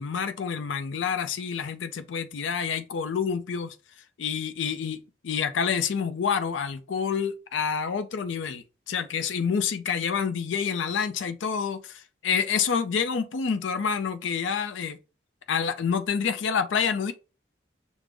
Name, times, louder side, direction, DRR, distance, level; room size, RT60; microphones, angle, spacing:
voice 1, 0.0-3.8 4.2-5.0 5.2-15.0 15.5-17.1, left 6 dB, 85° left, 0.4 m, -28 dB
5.1 x 2.0 x 3.3 m
head